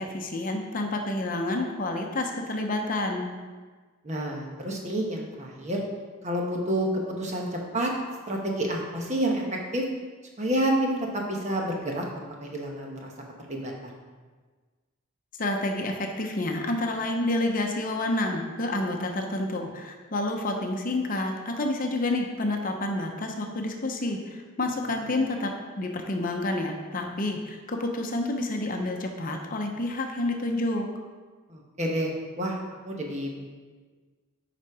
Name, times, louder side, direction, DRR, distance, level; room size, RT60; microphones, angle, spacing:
voice 1, 0.0-3.3 15.4-30.9, left 2 dB, 40° left, 3 dB, 0.7 m, -29 dB
voice 2, 4.0-5.8 6.2-6.9 7.2-7.9 8.3-9.4 9.7-9.8 10.4-13.1 13.5-13.9 31.5-32.6 32.8-33.4, right 1 dB, 35° right, 0 dB, 1.1 m, -29 dB
7.2 x 5.1 x 4.8 m, 1.4 s
head